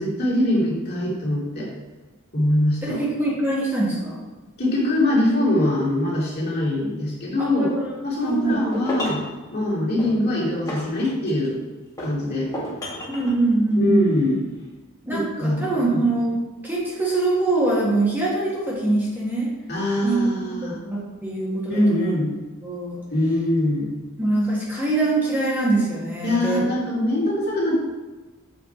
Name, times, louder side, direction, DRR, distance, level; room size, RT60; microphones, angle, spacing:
voice 1, 0.0-1.7 2.3-3.0 4.6-7.7 8.0-9.2 9.5-11.6 12.0-12.8 13.8-14.4 15.1-16.0 19.7-20.8 21.7-22.3 23.1-23.9 26.2-27.8, left 1 dB, 45° left, -5 dB, 2.3 m, -23 dB
voice 2, 2.8-4.2 7.4-8.6 13.1-14.1 15.0-16.4 16.6-19.5 20.0-22.2 22.6-23.0 24.2-26.6, right 2 dB, 10° right, -6 dB, 1.6 m, -23 dB
Glass Bottle Rolling on Wood, 8.3-9.3 10.0-11.5 12.0-13.3, equal, 15° left, 2.0 m, -32 dB
7.2 x 4.8 x 4.4 m, 1.2 s
head